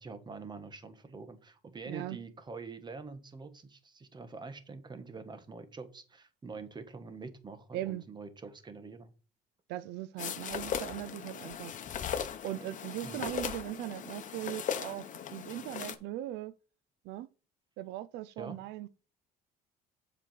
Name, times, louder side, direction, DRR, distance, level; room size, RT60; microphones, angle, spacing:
voice 1, 0.0-9.1 13.0-13.2 18.4-18.6, right 4 dB, 25° right, 1.4 m, -45 dB
voice 2, 1.9-2.2 7.7-8.0 9.7-11.7 12.4-16.5 17.0-17.3 17.8-18.9, right 14 dB, 90° right, 0.5 m, -39 dB
sound 1, 10.2-16.0, left 8 dB, 50° left, 1.1 m, -38 dB
7.7 x 5.0 x 5.7 m
cardioid pair, 110°, 17 cm